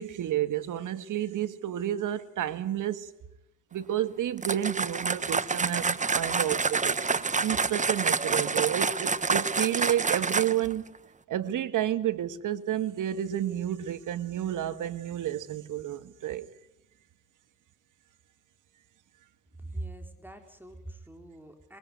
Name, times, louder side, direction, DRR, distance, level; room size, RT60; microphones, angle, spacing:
voice 1, 0.0-3.1 3.7-10.8 11.3-16.5, right 11 dB, 65° right, 1.8 m, -30 dB
sound 1, 4.4-10.7, right 4 dB, 20° right, 1.2 m, -28 dB
voice 2, 19.6-21.8, right 2 dB, 5° right, 3.8 m, -42 dB
23.5 x 22.5 x 9.4 m
cardioid pair, 90°, 33 cm